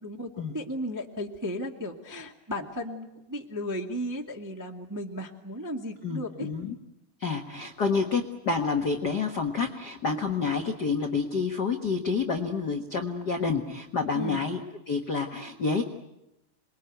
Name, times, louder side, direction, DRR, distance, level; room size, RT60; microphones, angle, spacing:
voice 1, 0.0-6.5 8.0-8.1 14.1-14.4, equal, 15° right, 1 dB, 0.6 m, -35 dB
voice 2, 6.0-6.7 7.2-14.6 14.9-15.8, left 4 dB, 85° left, 3 dB, 0.9 m, -28 dB
27.5 x 21.5 x 9.2 m, 0.90 s
omnidirectional pair, 4.5 m